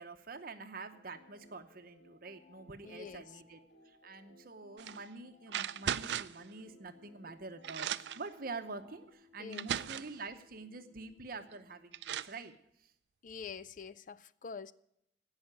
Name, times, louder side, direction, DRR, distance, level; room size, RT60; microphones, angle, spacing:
voice 1, 0.0-3.6 3.8-12.5 12.8-12.9, right 3 dB, 50° right, 0.9 m, -46 dB
sound 1, 0.9-9.1, left 1 dB, 70° left, 2.5 m, -62 dB
voice 2, 2.8-3.2 9.4-9.7 13.2-14.7, left 5 dB, 45° left, 0.4 m, -46 dB
sound 2, 4.8-5.0 5.5-6.4 7.3-7.4 7.6-8.3 9.1-9.2 9.5-10.2 11.5-11.6 11.9-12.4, right 9 dB, 70° right, 0.4 m, -37 dB
sound 3, 5.7-12.0, left 4 dB, 10° left, 4.6 m, -66 dB
16.5 x 5.7 x 9.1 m
head